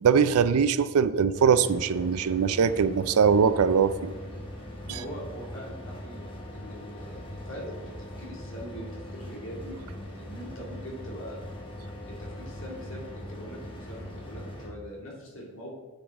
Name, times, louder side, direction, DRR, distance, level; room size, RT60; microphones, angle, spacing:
voice 1, 0.0-4.1 4.9-5.0, right 6 dB, 85° right, 14 dB, 0.4 m, -22 dB
sound 1, 1.3-14.7, left 1 dB, 25° left, 1.3 m, -41 dB
voice 2, 4.9-11.4 12.1-15.7, equal, 60° left, -2 dB, 2.3 m, -42 dB
8.9 x 7.1 x 3.7 m, 1.3 s
head